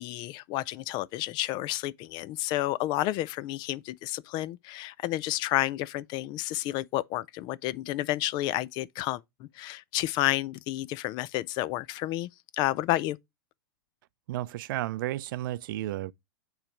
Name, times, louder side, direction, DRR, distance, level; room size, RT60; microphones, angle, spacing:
voice 1, 0.0-13.2, left 16 dB, 35° left, 0.4 m, -31 dB
voice 2, 14.3-16.1, right 15 dB, 60° right, 0.4 m, -32 dB
8.8 x 3.2 x 4.9 m
hypercardioid pair, 135°, 12 cm